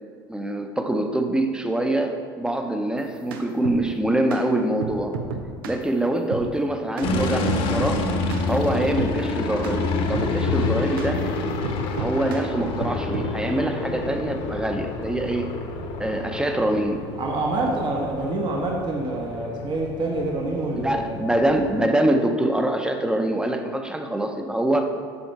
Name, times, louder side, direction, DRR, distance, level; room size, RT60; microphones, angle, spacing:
voice 1, 0.3-5.1 5.7-8.0 8.5-11.2 12.0-15.5 16.0-17.1 20.7-25.0, right 1 dB, 5° right, 5 dB, 0.8 m, -24 dB
sound 1, 3.0-3.8 4.3-4.4 4.8-5.8 6.3-6.5 7.0-7.1 7.5-8.0 8.3-8.5 9.0-9.2 9.6-9.8 10.1-11.2 11.6-12.5 12.8-13.3, right 5 dB, 85° right, 0.7 m, -32 dB
sound 2, 7.0-21.8, left 3 dB, 55° left, 1.1 m, -28 dB
voice 2, 17.2-21.1, right 2 dB, 40° right, 0 dB, 1.2 m, -26 dB
7.2 x 6.4 x 4.6 m, 2.1 s
hypercardioid pair, 80°, 11 cm